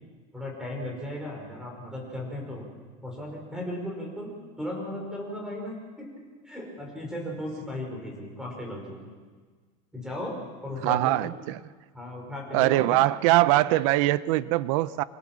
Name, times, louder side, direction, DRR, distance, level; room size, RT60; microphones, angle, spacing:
voice 1, 0.3-2.6 3.0-4.3 4.6-6.1 6.5-9.0 9.9-11.3 11.9-13.0, left 1 dB, 5° right, 0 dB, 5.4 m, -36 dB
voice 2, 10.8-11.6 12.5-15.0, right 17 dB, 65° right, 16 dB, 0.6 m, -22 dB
25.5 x 17.5 x 7.5 m, 1.5 s
cardioid pair, 165°, 18 cm